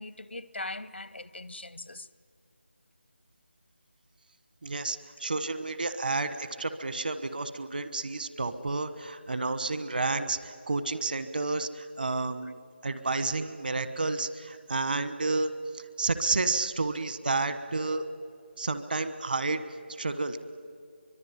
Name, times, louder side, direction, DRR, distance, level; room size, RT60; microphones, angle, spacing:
voice 1, 0.0-2.1 12.4-12.5 12.9-13.0, left 2 dB, 85° left, 0.9 m, -40 dB
voice 2, 4.6-12.6 12.8-18.1 18.6-19.6 20.0-20.4, right 3 dB, 55° right, 1.3 m, -30 dB
24.0 x 22.0 x 9.8 m
figure-of-eight pair, 165°, 6 cm